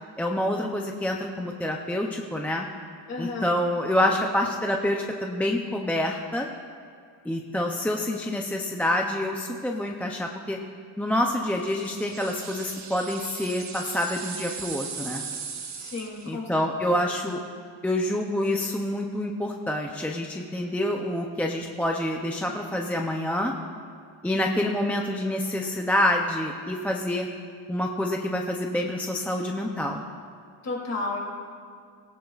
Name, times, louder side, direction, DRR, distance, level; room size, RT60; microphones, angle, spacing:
voice 1, 0.2-2.7 3.2-6.5 7.3-10.6 11.0-15.2 16.3-17.4 17.8-23.5 24.2-27.3 27.7-30.0, left 1 dB, 5° left, 1 dB, 0.4 m, -27 dB
voice 2, 3.1-3.5 15.8-16.5 17.0-17.1 30.6-31.2, left 3 dB, 35° left, -2 dB, 2.7 m, -32 dB
sound 1, 11.5-16.3, right 6 dB, 35° right, 1.0 m, -38 dB
17.5 x 17.0 x 2.4 m, 2.2 s
cardioid pair, 150°, 46 cm